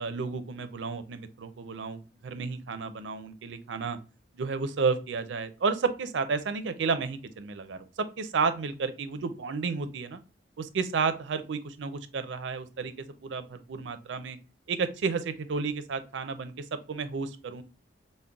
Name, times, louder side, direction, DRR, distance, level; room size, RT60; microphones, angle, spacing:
voice 1, 0.0-4.0 4.3-7.9 8.2-10.2 10.6-12.9 13.2-14.4 14.7-17.6, right 5 dB, 80° right, 11 dB, 0.5 m, -31 dB
5.2 x 2.1 x 2.3 m, 0.34 s
head